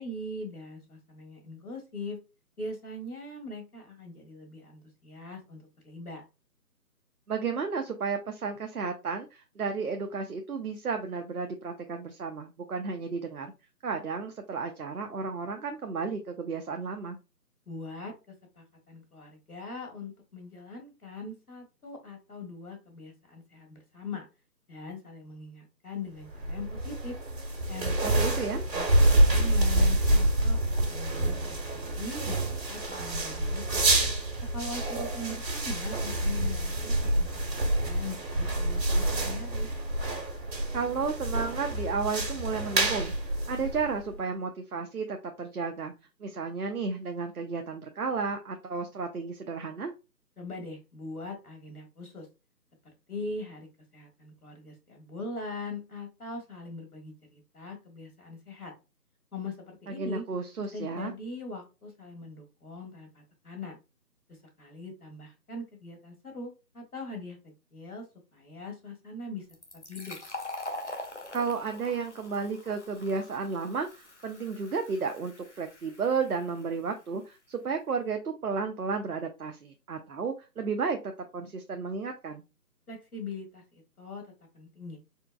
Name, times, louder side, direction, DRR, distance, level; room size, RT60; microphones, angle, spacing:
voice 1, 0.0-2.2 2.6-6.2 17.6-24.3 24.7-27.1 27.7-27.9 28.7-28.9 29.1-31.6 32.0-33.8 34.5-39.7 50.4-52.3 53.1-53.7 53.9-58.7 59.3-60.2 60.7-63.8 64.3-68.1 68.3-69.5 69.7-70.2 82.9-85.0, left 2 dB, 60° left, 2 dB, 1.7 m, -41 dB
voice 2, 7.3-13.5 13.8-17.2 28.0-28.7 40.7-45.9 46.2-49.9 59.9-61.1 71.3-82.4, right 5 dB, 60° right, 5 dB, 0.7 m, -33 dB
sound 1, 26.3-44.1, right 1 dB, 80° right, 1.7 m, -27 dB
Fill (with liquid), 69.5-76.9, left 2 dB, 45° left, 0.8 m, -43 dB
4.4 x 3.6 x 2.3 m, 0.28 s
figure-of-eight pair, 180°, 50 cm